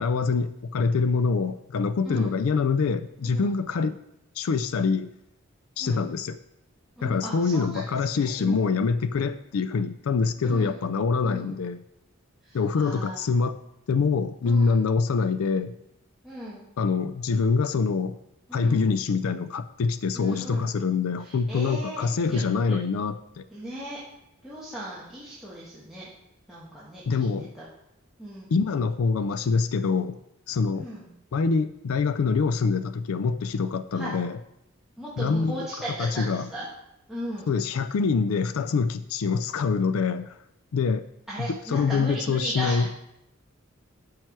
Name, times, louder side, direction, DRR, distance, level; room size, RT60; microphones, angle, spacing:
voice 1, 0.0-4.0 4.4-5.1 5.8-6.4 7.0-11.8 12.5-13.6 13.9-15.8 16.8-18.2 18.5-23.5 27.1-27.5 28.5-30.2 30.5-30.9 31.3-34.4 35.2-35.7 36.0-36.5 37.5-40.3 40.7-41.1 41.4-42.9, left 4 dB, 85° left, 13 dB, 0.4 m, -25 dB
voice 2, 2.0-2.4 3.2-3.5 5.8-6.1 7.0-8.6 10.4-10.8 11.2-11.6 12.4-13.2 14.4-14.8 16.2-16.6 18.5-18.9 20.1-20.7 21.2-22.7 23.5-24.0 24.4-26.1 26.5-27.6 28.2-28.5 30.7-31.0 33.9-34.2 35.0-36.6 37.1-37.5 41.3-42.9, equal, ahead, -9 dB, 1.5 m, -37 dB
12.0 x 4.7 x 4.6 m, 0.83 s
head